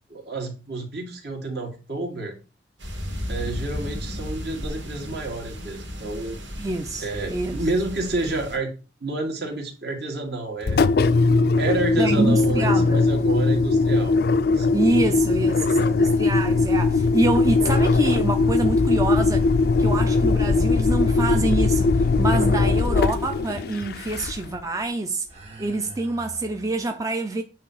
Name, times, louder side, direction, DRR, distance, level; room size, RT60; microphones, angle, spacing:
voice 1, 0.1-2.3 3.3-6.4 7.0-8.7 9.0-10.8 11.6-14.2 14.5-14.7, right 2 dB, 60° right, 2.2 m, -29 dB
sound 1, 2.8-8.6, equal, 90° right, 2.4 m, -34 dB
voice 2, 6.6-7.6 12.0-13.0 14.7-19.5 19.8-25.3 25.6-27.4, right 2 dB, 20° right, 0.5 m, -26 dB
Engine, 10.6-24.6, left 3 dB, 60° left, 0.4 m, -20 dB
sound 2, 17.7-24.2 25.2-26.9, right 2 dB, 35° right, 2.2 m, -48 dB
8.7 x 3.0 x 5.6 m
head